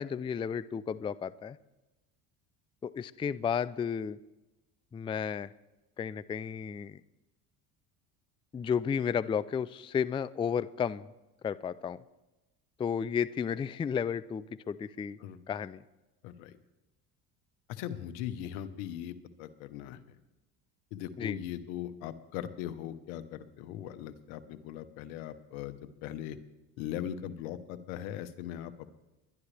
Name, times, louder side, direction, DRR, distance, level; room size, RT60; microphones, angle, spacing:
voice 1, 0.0-1.6 2.8-4.2 4.9-5.5 6.0-7.0 8.5-11.1 11.4-12.0 12.8-15.2 15.5-15.8 21.2-21.4, left 7 dB, 15° left, 18 dB, 0.3 m, -33 dB
voice 2, 16.2-16.6 17.7-20.0 20.9-26.4 26.8-28.9, left 11 dB, 80° left, 11 dB, 1.2 m, -39 dB
22.0 x 11.0 x 3.4 m, 1.0 s
supercardioid pair, 90°, 40 cm